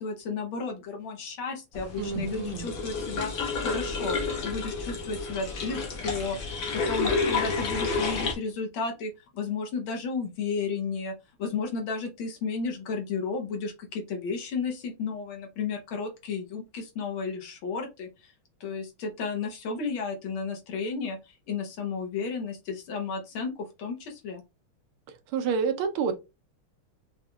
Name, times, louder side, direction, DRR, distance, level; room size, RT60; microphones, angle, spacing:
voice 1, 0.0-4.2 4.4-11.1 11.4-18.3 18.6-21.2 21.5-24.4, left 5 dB, 70° left, 1.7 m, -33 dB
sound 1, 1.7-8.3, left 4 dB, 55° left, 1.2 m, -30 dB
voice 2, 2.0-2.7 25.3-26.1, right 6 dB, 75° right, 1.6 m, -28 dB
5.4 x 2.8 x 2.3 m
omnidirectional pair, 2.4 m